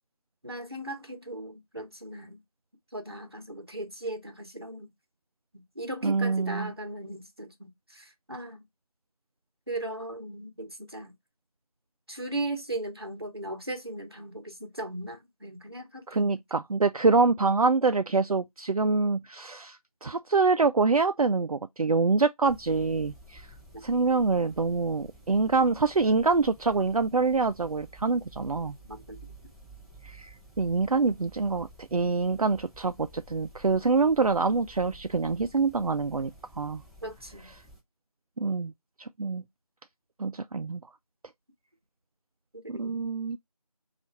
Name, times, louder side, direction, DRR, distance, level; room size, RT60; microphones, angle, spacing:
voice 1, 0.4-2.4 2.9-4.9 5.5-8.6 9.7-11.1 12.1-16.3 23.7-23.8 28.9-29.2 37.0-37.5 42.5-43.1, right 1 dB, 40° right, 0.9 m, -38 dB
voice 2, 6.0-6.7 16.1-23.5 23.8-28.8 30.0-36.8 38.4-38.7 39.0-39.4 40.2-40.8 42.7-43.4, right 4 dB, 70° right, 0.4 m, -25 dB
sound 1, 22.4-37.8, right 1 dB, ahead, 0.5 m, -52 dB
4.1 x 2.4 x 4.4 m
figure-of-eight pair, 180°, 19 cm